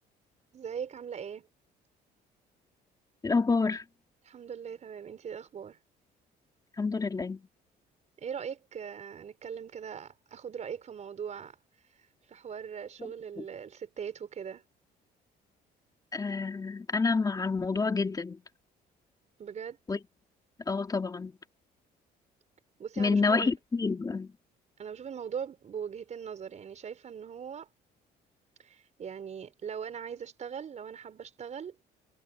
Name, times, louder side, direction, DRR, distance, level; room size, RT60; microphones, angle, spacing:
voice 1, 0.5-1.5 4.2-5.8 8.2-11.6 11.9-14.6 19.4-19.8 22.8-23.5 24.8-27.7 28.6-31.8, right 7 dB, 45° right, 5.5 m, -40 dB
voice 2, 3.2-3.8 6.8-7.4 13.4-13.5 16.1-18.4 19.9-20.0 20.7-21.4 23.0-24.3, left 4 dB, 20° left, 2.8 m, -28 dB
cardioid pair, 110°, 17 cm